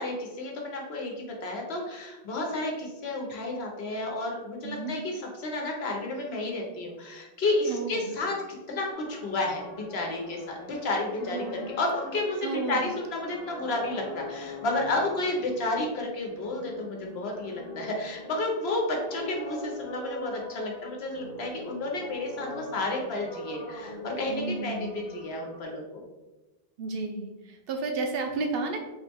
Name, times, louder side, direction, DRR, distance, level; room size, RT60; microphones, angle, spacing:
voice 1, 0.0-8.4 8.7-26.0, left 2 dB, 70° left, 0 dB, 1.1 m, -31 dB
voice 2, 4.6-4.9 7.7-8.1 11.2-11.7 12.4-12.8 24.3-25.0 26.8-28.8, right 3 dB, 65° right, 4 dB, 0.8 m, -32 dB
sound 1, 8.9-25.6, left 1 dB, 45° left, 0.7 m, -43 dB
3.7 x 3.1 x 3.4 m, 1.1 s
omnidirectional pair, 1.1 m